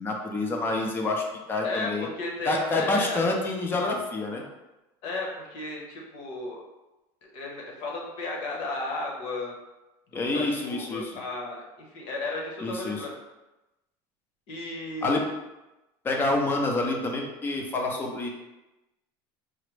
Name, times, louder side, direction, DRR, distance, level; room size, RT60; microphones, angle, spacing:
voice 1, 0.0-2.1 2.4-4.4 10.1-11.1 12.6-13.1 15.0-15.2 16.0-18.3, left 2 dB, 20° left, 1 dB, 0.5 m, -27 dB
voice 2, 1.6-3.3 5.0-6.6 7.2-9.5 10.1-13.1 14.5-15.1, left 2 dB, 55° left, -1 dB, 1.0 m, -34 dB
4.9 x 2.1 x 3.2 m, 1.0 s
cardioid pair, 155°, 11 cm